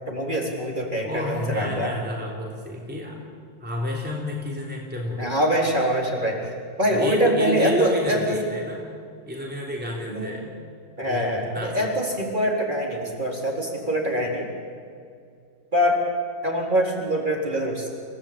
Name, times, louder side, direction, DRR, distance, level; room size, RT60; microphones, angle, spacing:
voice 1, 0.0-1.9 5.2-6.4 6.8-8.4 10.1-10.3 11.0-14.4 15.7-16.0 16.4-17.9, equal, 25° right, -1 dB, 4.0 m, -24 dB
voice 2, 1.0-3.2 3.6-5.3 6.9-8.8 9.3-10.5 11.0-11.9, left 1 dB, 5° right, -2 dB, 3.5 m, -31 dB
29.5 x 17.0 x 8.9 m, 2.3 s
omnidirectional pair, 2.1 m